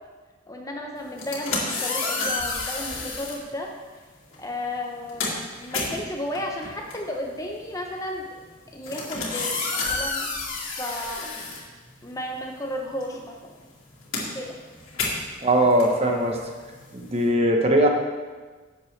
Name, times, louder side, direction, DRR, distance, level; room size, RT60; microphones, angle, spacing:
voice 1, 0.5-3.7 4.4-8.3 8.7-10.3 10.8-11.3 12.0-13.5 14.3-14.6 15.3-15.4 15.9-16.2, left 1 dB, 15° left, 1 dB, 0.8 m, -33 dB
sound 1, 1.1-3.4 4.3-4.5 4.8-12.3 12.6-17.3, left 3 dB, 90° left, 2.4 m, -31 dB
voice 2, 15.4-16.4 16.9-17.9, right 1 dB, 30° right, 2 dB, 0.9 m, -20 dB
11.5 x 7.8 x 3.3 m, 1.4 s
head